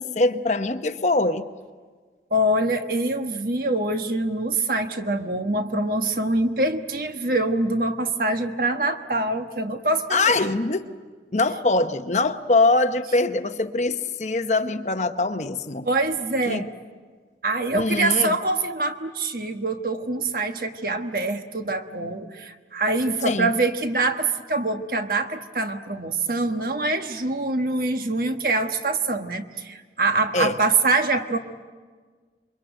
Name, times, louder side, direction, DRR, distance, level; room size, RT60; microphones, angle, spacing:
voice 1, 0.0-1.5 10.1-10.8 11.3-15.9 16.5-16.7 17.7-18.4 23.2-23.5 30.3-30.5, left 2 dB, 40° left, 9 dB, 0.9 m, -23 dB
voice 2, 2.3-10.4 15.8-16.7 17.4-31.4, right 2 dB, 55° right, 6 dB, 1.3 m, -24 dB
28.0 x 23.0 x 9.1 m, 1.5 s
head